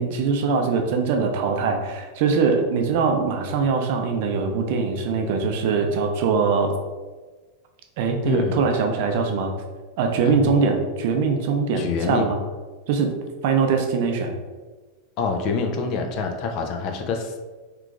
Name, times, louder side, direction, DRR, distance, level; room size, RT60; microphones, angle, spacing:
voice 1, 0.0-6.7 8.0-9.5 10.0-12.4 12.9-13.1 13.4-14.3, right 5 dB, 60° right, 4 dB, 0.5 m, -22 dB
voice 2, 8.2-8.6 10.3-10.5 11.7-12.3 15.2-17.3, left 5 dB, 45° left, 4 dB, 0.5 m, -26 dB
3.0 x 2.4 x 3.6 m, 1.3 s
supercardioid pair, 135°, 0 cm